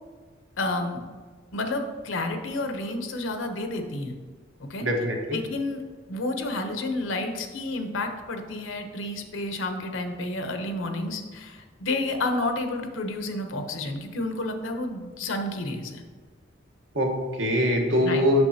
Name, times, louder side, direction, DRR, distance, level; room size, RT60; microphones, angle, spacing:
voice 1, 0.6-1.1 1.5-4.1 4.6-4.8 5.3-16.0 18.0-18.3, left 2 dB, 85° left, 6 dB, 0.8 m, -30 dB
voice 2, 4.8-5.4 16.9-18.4, left 1 dB, 85° right, 1 dB, 1.2 m, -23 dB
8.0 x 6.3 x 2.7 m, 1.5 s
head